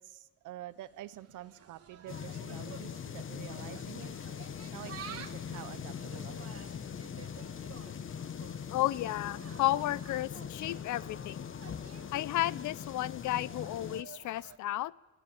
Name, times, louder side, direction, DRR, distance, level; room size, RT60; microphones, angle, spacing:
voice 1, 0.0-4.1 4.7-6.6, right 14 dB, 85° right, 13 dB, 0.8 m, -48 dB
Insect, 0.7-14.6, right 8 dB, 50° right, 1.5 m, -52 dB
sound 1, 2.1-14.0, left 8 dB, 45° left, 0.9 m, -41 dB
voice 2, 8.7-11.5 12.1-14.9, left 15 dB, 75° left, 20 dB, 0.6 m, -33 dB
21.5 x 15.5 x 8.7 m, 1.2 s
cardioid pair, 90°, 30 cm